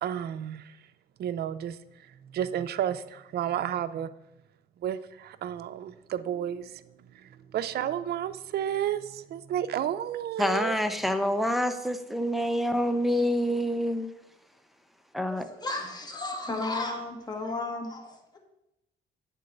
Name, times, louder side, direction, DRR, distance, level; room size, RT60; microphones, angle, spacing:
voice 1, 0.0-0.8 1.2-4.1 4.8-6.8 7.1-10.7, right 10 dB, 55° right, 12 dB, 0.4 m, -32 dB
voice 2, 10.4-14.1 15.1-15.5 16.5-16.6, equal, ahead, 8 dB, 0.6 m, -27 dB
voice 3, 15.6-18.4, left 2 dB, 20° left, 2 dB, 1.5 m, -33 dB
8.0 x 3.8 x 5.3 m, 0.88 s
cardioid pair, 90°, 20 cm